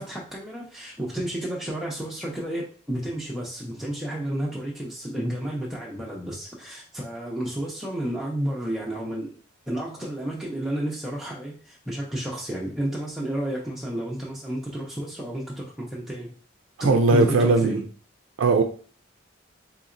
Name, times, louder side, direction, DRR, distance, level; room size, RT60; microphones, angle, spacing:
voice 1, 0.0-9.4 9.7-16.4 16.8-17.8, right 1 dB, ahead, 0.5 m, -31 dB
voice 2, 16.8-17.8 18.4-18.6, right 3 dB, 70° right, 0.4 m, -19 dB
4.0 x 2.8 x 2.5 m
head